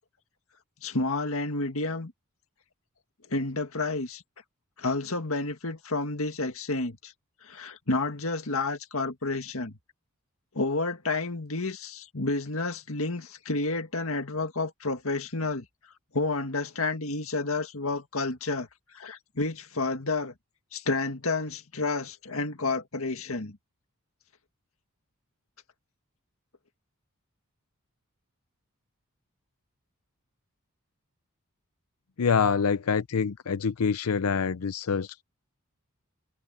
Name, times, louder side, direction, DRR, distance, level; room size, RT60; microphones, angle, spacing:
voice 1, 0.8-2.1 3.3-4.2 4.8-7.1 7.4-9.8 10.5-15.7 16.1-18.7 18.9-20.3 20.7-23.6, left 3 dB, 70° left, 2.0 m, -30 dB
voice 2, 32.2-35.2, left 6 dB, 85° left, 0.6 m, -26 dB
head